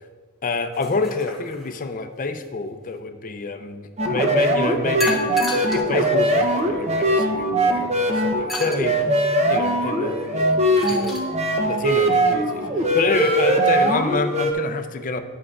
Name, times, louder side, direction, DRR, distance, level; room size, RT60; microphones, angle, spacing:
voice 1, 0.4-5.2 5.5-9.1 9.4-11.2 11.7-15.2, left 3 dB, 40° left, 7 dB, 0.6 m, -27 dB
sound 1, 0.7-1.9 5.0-5.9 6.6-6.7 8.5-8.8 10.5-11.3, left 2 dB, ahead, 1.4 m, -31 dB
sound 2, 4.0-14.5, right 1 dB, 30° right, 0.7 m, -21 dB
11.0 x 7.5 x 2.4 m, 1.5 s
head